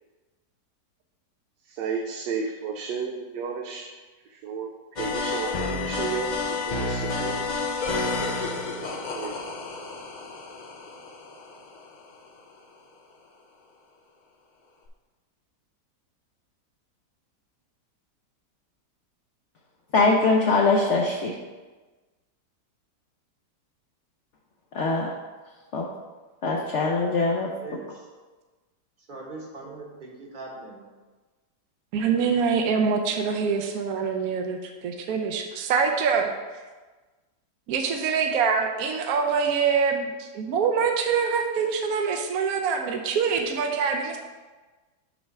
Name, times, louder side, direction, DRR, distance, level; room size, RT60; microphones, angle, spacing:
voice 1, 1.8-3.9 4.4-4.7 5.0-7.4 9.1-9.4, right 5 dB, 90° right, 1 dB, 1.3 m, -32 dB
sound 1, 5.0-12.2, left 3 dB, 85° left, 0.4 m, -30 dB
voice 2, 19.9-21.3 24.7-25.1 25.7-25.9 26.4-27.5, left 3 dB, 60° left, -1 dB, 0.8 m, -22 dB
voice 3, 29.1-30.9, right 2 dB, 35° right, -1 dB, 1.0 m, -40 dB
voice 4, 31.9-36.3 37.7-44.2, right 6 dB, 70° right, 3 dB, 1.0 m, -25 dB
6.4 x 3.4 x 5.9 m, 1.3 s
omnidirectional pair, 1.8 m